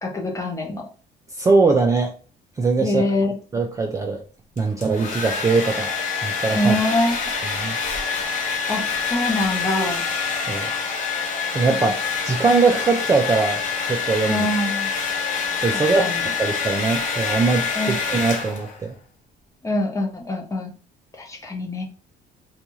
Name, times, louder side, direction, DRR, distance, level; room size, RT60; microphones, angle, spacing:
voice 1, 0.0-0.9 2.8-3.3 6.5-7.2 8.7-10.0 11.7-11.8 14.3-14.9 15.7-16.2 17.7-17.9 19.6-20.7 21.2-21.8, left 1 dB, 20° left, 1 dB, 0.7 m, -24 dB
voice 2, 1.4-2.1 2.6-3.0 3.5-4.2 4.6-5.9 6.2-6.7 7.5-7.8 10.5-10.7 11.5-11.9 12.2-13.6 13.9-14.5 15.6-18.9, right 4 dB, 20° right, 2 dB, 0.3 m, -21 dB
Domestic sounds home sounds, 4.6-18.8, left 5 dB, 50° left, 0.8 m, -26 dB
2.6 x 2.3 x 3.0 m, 0.37 s
cardioid pair, 110°, 17 cm